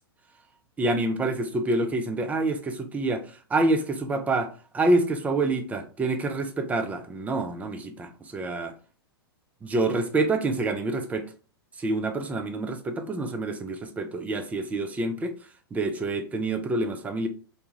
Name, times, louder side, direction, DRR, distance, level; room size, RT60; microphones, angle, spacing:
voice 1, 0.8-8.7 9.6-11.3 11.8-15.3 15.7-17.3, right 2 dB, 10° right, 7 dB, 0.4 m, -27 dB
2.7 x 2.2 x 3.0 m, 0.38 s
figure-of-eight pair, 105°, 13 cm